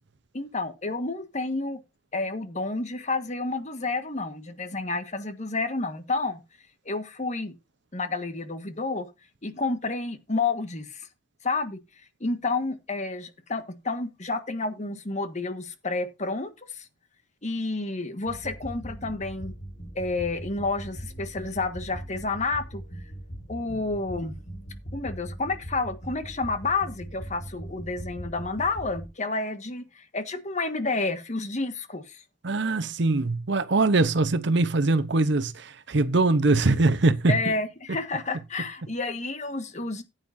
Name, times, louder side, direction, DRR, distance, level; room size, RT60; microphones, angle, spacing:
voice 1, 0.3-1.8 2.1-6.4 6.8-7.5 7.9-9.1 9.4-11.1 11.4-11.8 12.2-16.9 17.4-19.5 19.9-22.8 23.5-24.4 24.9-32.2 37.3-40.0, left 3 dB, 40° left, 1.6 m, -30 dB
sound 1, 18.2-29.1, right 1 dB, 70° left, 5.2 m, -40 dB
voice 2, 32.4-37.4, right 2 dB, 65° right, 0.9 m, -22 dB
15.0 x 9.1 x 2.7 m
head